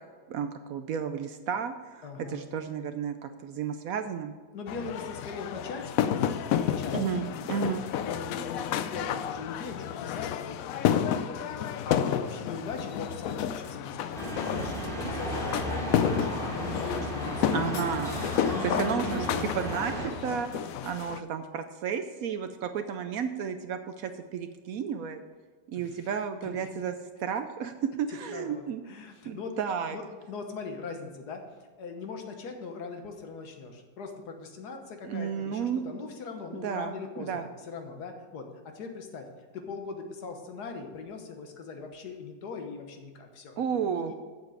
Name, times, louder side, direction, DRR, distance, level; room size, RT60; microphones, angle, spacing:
voice 1, 0.3-4.3 6.9-7.8 17.5-18.2 18.6-19.3 19.5-20.5 20.8-25.2 25.7-28.8 29.3-30.0 35.0-35.8 36.5-37.5 43.6-44.1, right 7 dB, 75° right, 8 dB, 0.8 m, -32 dB
voice 2, 2.0-2.5 4.5-6.0 6.6-15.6 15.9-17.7 18.3-19.5 25.7-26.1 26.4-26.8 28.3-29.5 29.9-31.4 31.8-39.3 39.5-44.1, left 4 dB, 60° left, 4 dB, 1.6 m, -40 dB
sound 1, 4.7-21.2, left 9 dB, 85° left, 0.7 m, -31 dB
sound 2, 14.1-20.1, equal, ahead, 2.2 m, -34 dB
8.1 x 7.0 x 6.4 m, 1.5 s
omnidirectional pair, 2.0 m